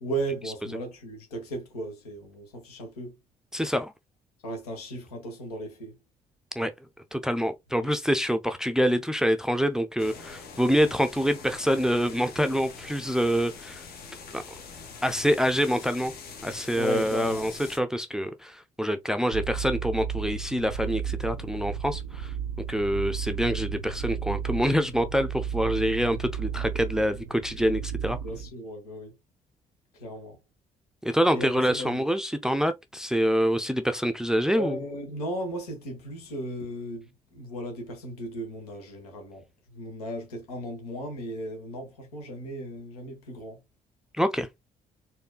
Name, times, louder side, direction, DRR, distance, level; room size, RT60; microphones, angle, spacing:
voice 1, 0.0-3.2 4.4-6.0 7.8-7.9 16.7-17.4 28.2-29.1 29.9-30.4 31.3-32.0 34.5-43.6, right 1 dB, 75° left, 1.1 m, -36 dB
voice 2, 3.5-3.9 6.6-6.7 7.1-13.8 14.3-14.4 15.0-16.1 16.4-22.3 22.7-28.2 31.0-34.8 44.2-44.5, equal, 5° right, 0.5 m, -26 dB
sound 1, 10.0-17.8, left 5 dB, 55° left, 1.1 m, -44 dB
sound 2, 19.3-28.5, right 8 dB, 80° right, 0.4 m, -33 dB
4.4 x 2.6 x 2.2 m
figure-of-eight pair, 45°, 19 cm